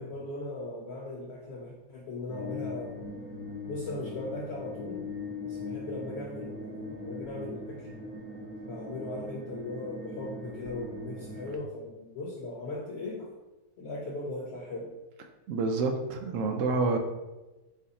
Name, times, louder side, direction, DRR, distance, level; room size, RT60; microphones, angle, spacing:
voice 1, 0.0-3.1 3.7-5.1 5.4-7.9 8.6-13.3 13.8-15.0, left 2 dB, 60° left, -2 dB, 0.7 m, -38 dB
sound 1, 2.3-11.6, left 2 dB, 5° left, 0.5 m, -40 dB
voice 2, 15.5-17.0, right 3 dB, 70° right, 5 dB, 0.9 m, -28 dB
4.2 x 2.5 x 4.1 m, 1.1 s
omnidirectional pair, 1.5 m